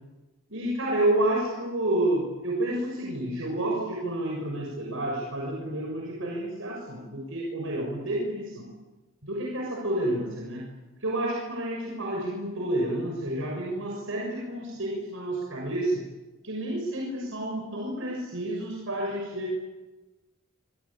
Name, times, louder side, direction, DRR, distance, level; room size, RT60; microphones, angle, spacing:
voice 1, 0.5-8.7 9.2-10.6 11.0-16.0 16.4-19.5, right 1 dB, 65° right, -2 dB, 6.6 m, -29 dB
27.0 x 25.0 x 8.8 m, 1.2 s
head